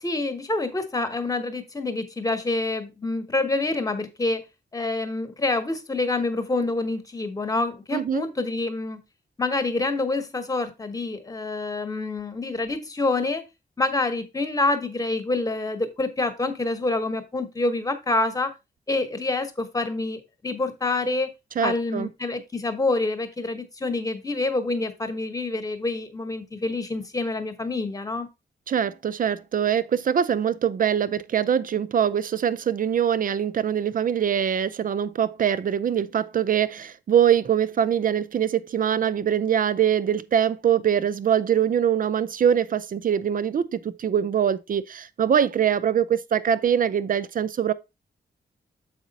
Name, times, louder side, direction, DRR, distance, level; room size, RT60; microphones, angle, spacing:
voice 1, 0.0-4.4 4.7-9.0 9.4-13.4 13.8-18.5 18.9-21.3 21.6-28.3, left 2 dB, 20° left, 1.1 m, -27 dB
voice 2, 7.9-8.2 21.6-22.1 28.7-47.7, right 9 dB, 50° right, 0.5 m, -23 dB
7.3 x 4.9 x 4.0 m
wide cardioid pair, 170°, 18 cm